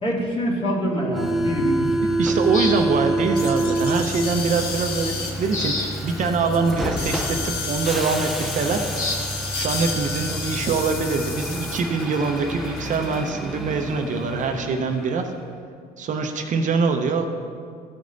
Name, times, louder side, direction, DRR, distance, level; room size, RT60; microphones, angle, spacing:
voice 1, 0.0-2.0 10.3-10.4, equal, 35° left, -3 dB, 2.3 m, -24 dB
Subway metro underground, 1.1-15.5, right 2 dB, ahead, 0.5 m, -28 dB
voice 2, 2.2-8.8 9.5-15.3 16.0-17.3, right 4 dB, 45° right, 4 dB, 0.7 m, -24 dB
sound 1, 2.5-2.8 5.0-5.2 5.5-5.9 6.5-6.6 9.0-9.2, left 2 dB, 50° left, 1.4 m, -27 dB
sound 2, 3.4-13.3, left 4 dB, 65° left, 1.4 m, -33 dB
14.0 x 5.0 x 4.0 m, 2.2 s
cardioid pair, 110°, 17 cm